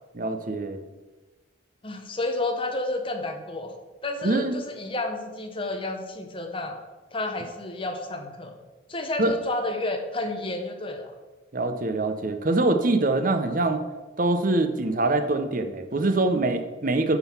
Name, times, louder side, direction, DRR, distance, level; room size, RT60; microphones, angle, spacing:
voice 1, 0.1-0.8 4.2-4.5 9.2-9.3 11.5-13.8 14.2-17.2, right 2 dB, 40° right, 8 dB, 0.7 m, -24 dB
voice 2, 1.8-3.7 4.0-6.8 7.1-8.6 8.9-11.1, left 2 dB, 25° left, 5 dB, 0.8 m, -31 dB
9.6 x 3.9 x 7.1 m, 1.2 s
head